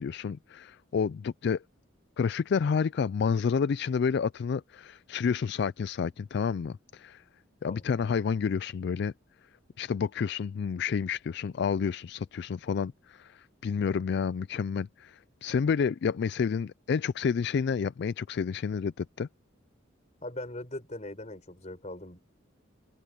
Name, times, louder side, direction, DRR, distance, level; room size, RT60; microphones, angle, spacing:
voice 1, 0.0-1.6 2.2-7.2 7.6-9.1 9.8-19.3, left 6 dB, 55° left, 0.3 m, -29 dB
voice 2, 20.2-22.2, left 1 dB, 35° left, 4.6 m, -40 dB
head